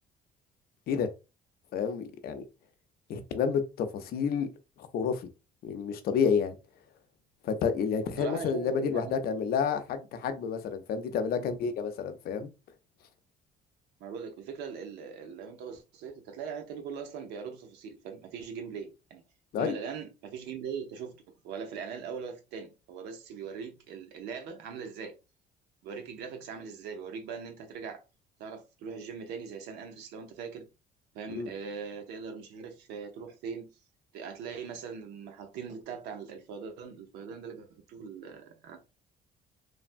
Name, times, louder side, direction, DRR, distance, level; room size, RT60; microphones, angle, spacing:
voice 1, 1.7-2.5 3.1-4.5 4.8-5.3 5.6-6.6 7.4-12.5 19.5-19.7 31.4-31.5, left 6 dB, 65° left, 0.6 m, -30 dB
voice 2, 8.2-9.5 11.3-11.5 14.0-19.2 19.6-21.2 21.4-25.1 25.8-28.0 28.4-30.7 31.1-33.7 34.1-38.8, right 6 dB, 90° right, 0.7 m, -41 dB
3.3 x 2.1 x 2.5 m
cardioid pair, 110°, 17 cm